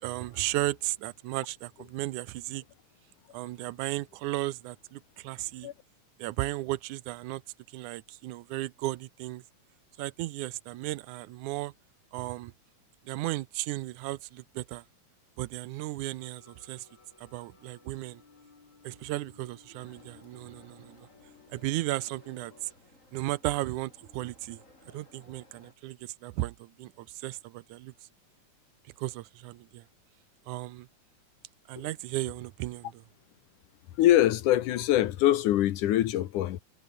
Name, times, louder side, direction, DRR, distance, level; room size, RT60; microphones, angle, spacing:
voice 1, 0.0-2.6 3.3-5.7 6.2-7.4 7.7-9.4 10.0-11.7 12.1-12.5 13.1-14.8 15.4-16.9 17.2-18.2 18.8-21.1 21.5-22.7 23.1-24.6 24.9-27.9 29.0-29.8 30.5-30.9 31.7-33.0, right 17 dB, 85° right, 2.2 m, -35 dB
sound 1, 16.2-22.7, left 5 dB, 65° left, 6.1 m, -59 dB
sound 2, 19.8-25.7, left 2 dB, 25° left, 6.4 m, -59 dB
voice 2, 34.0-36.6, left 13 dB, 90° left, 2.7 m, -24 dB
omnidirectional pair, 3.5 m